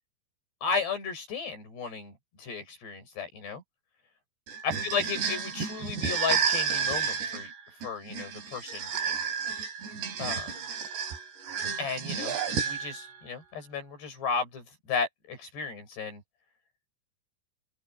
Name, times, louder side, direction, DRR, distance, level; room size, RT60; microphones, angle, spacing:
voice 1, 0.6-3.6 4.6-7.5 7.8-8.9 10.2-10.5 11.8-16.2, left 5 dB, 65° left, 9.4 m, -34 dB
sound 1, 4.5-13.1, right 6 dB, 70° right, 6.3 m, -31 dB
open air
omnidirectional pair, 5.2 m